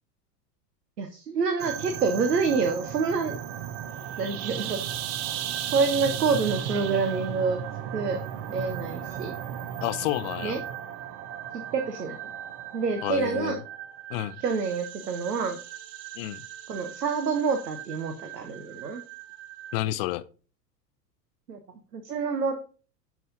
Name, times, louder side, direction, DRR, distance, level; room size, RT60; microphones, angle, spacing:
voice 1, 1.0-3.4 4.2-4.8 5.6-7.6 7.9-8.2 8.5-9.3 10.4-10.6 11.7-12.2 12.7-13.6 14.4-15.6 16.7-19.0 21.5-21.6 21.9-22.6, right 5 dB, 70° right, 1.2 m, -27 dB
sound 1, 1.6-19.8, right 10 dB, 35° right, 0.8 m, -36 dB
voice 2, 9.8-10.6 13.0-13.6 14.1-14.4 16.2-16.4 19.7-20.2, left 16 dB, 40° left, 0.6 m, -30 dB
11.0 x 5.0 x 4.0 m
figure-of-eight pair, 85°, 49 cm